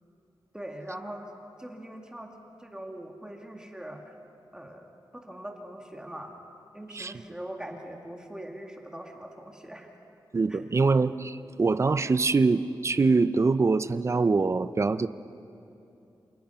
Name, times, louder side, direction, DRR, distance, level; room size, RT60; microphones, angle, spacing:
voice 1, 0.5-1.2 1.6-2.3 2.6-4.1 4.5-6.4 6.7-9.9 10.5-10.6, right 1 dB, 10° right, 2 dB, 2.1 m, -42 dB
voice 2, 10.3-15.1, right 4 dB, 35° right, 13 dB, 0.7 m, -24 dB
28.5 x 28.0 x 5.7 m, 2.8 s
wide cardioid pair, 135°, 8 cm